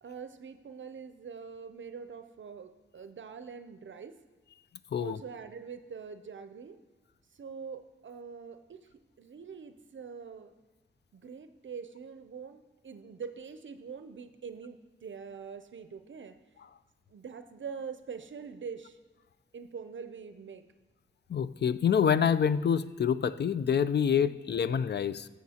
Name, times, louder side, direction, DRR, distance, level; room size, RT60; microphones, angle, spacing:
voice 1, 0.0-4.2 5.0-6.8 7.3-8.9 9.2-10.5 11.1-16.4 17.1-19.0 19.5-20.6 24.1-24.3, right 6 dB, 65° right, 9 dB, 0.5 m, -44 dB
voice 2, 21.3-25.3, left 7 dB, 55° left, 15 dB, 0.4 m, -27 dB
14.0 x 7.1 x 2.9 m, 1.3 s
cardioid pair, 60°, 21 cm